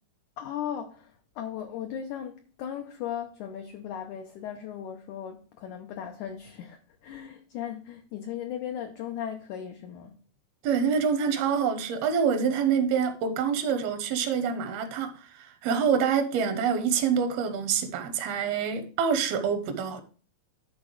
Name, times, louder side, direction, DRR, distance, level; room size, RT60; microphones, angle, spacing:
voice 1, 0.4-10.2, left 9 dB, 85° left, 1.7 m, -37 dB
voice 2, 10.6-20.0, right 7 dB, 80° right, 2.8 m, -26 dB
11.0 x 4.3 x 4.8 m
omnidirectional pair, 4.5 m